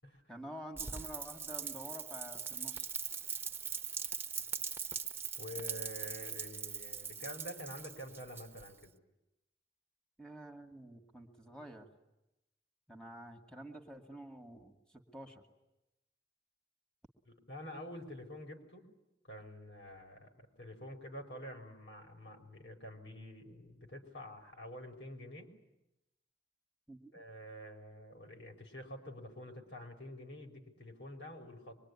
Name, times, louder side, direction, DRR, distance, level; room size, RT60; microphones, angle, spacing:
voice 1, 0.3-2.9 10.2-11.9 12.9-15.4 26.9-27.1, right 1 dB, 5° left, 3 dB, 2.6 m, -49 dB
Rain, 0.8-8.8, right 6 dB, 15° right, 1.2 m, -41 dB
voice 2, 5.4-8.9 17.3-18.9 19.3-25.5 27.1-31.8, left 1 dB, 85° left, 2 dB, 5.7 m, -48 dB
25.0 x 24.0 x 10.0 m, 0.91 s
head